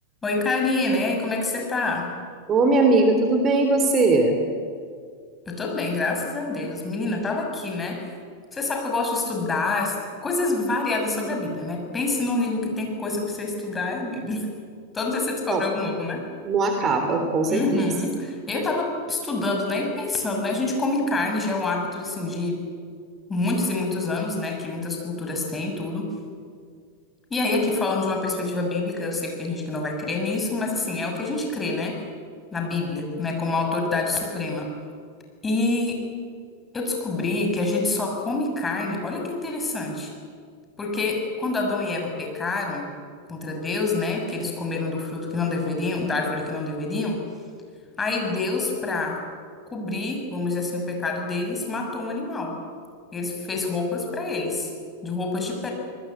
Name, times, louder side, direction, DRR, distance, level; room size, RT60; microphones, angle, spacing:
voice 1, 0.2-2.1 5.4-8.1 8.5-14.5 14.9-16.2 17.5-22.6 23.3-26.1 27.3-32.0 32.5-34.7 35.4-36.0 36.7-40.1 40.8-42.9 43.3-47.2 48.0-49.2 49.7-52.6 53.1-54.7 55.0-55.7, left 3 dB, 15° left, 1 dB, 6.5 m, -27 dB
voice 2, 2.5-4.4 15.5-15.6 16.4-17.8, right 3 dB, 25° right, 5 dB, 3.2 m, -20 dB
26.5 x 20.0 x 8.9 m, 2.1 s
figure-of-eight pair, 90°, 0 cm